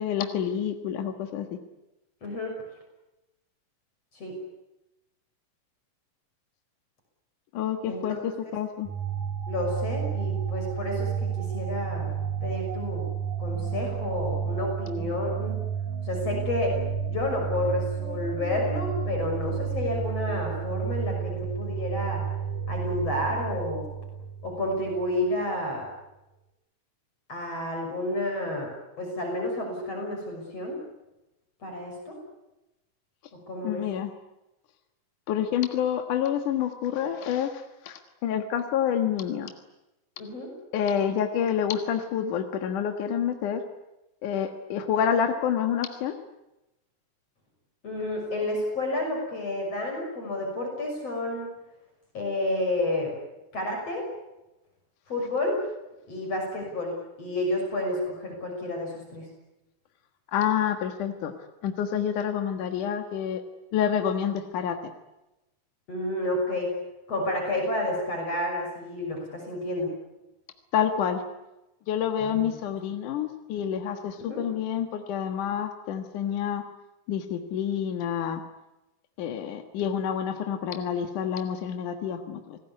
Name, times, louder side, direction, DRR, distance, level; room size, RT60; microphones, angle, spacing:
voice 1, 0.0-1.6 7.5-8.9 33.6-34.1 35.3-39.5 40.7-43.6 44.2-46.2 60.3-61.3 61.6-63.4 63.7-64.9 70.7-71.2 71.9-76.6 77.1-78.4 79.2-82.6, left 8 dB, 70° left, 6 dB, 3.0 m, -28 dB
voice 2, 2.2-2.6 4.1-4.3 7.8-8.2 9.5-12.1 12.4-13.0 13.4-15.6 16.1-16.8 17.1-22.2 22.7-23.9 24.4-25.8 27.3-28.7 29.0-30.8 31.6-32.1 33.3-33.8 40.2-40.5 47.8-51.5 52.1-53.1 53.5-54.1 55.1-55.6 56.1-59.3 65.9-66.7 67.1-69.9 72.2-72.5 74.2-74.4, left 1 dB, 45° left, 1 dB, 7.2 m, -30 dB
sound 1, 8.9-25.2, right 7 dB, 85° right, 5.6 m, -31 dB
29.5 x 20.0 x 9.8 m, 0.96 s
omnidirectional pair, 3.9 m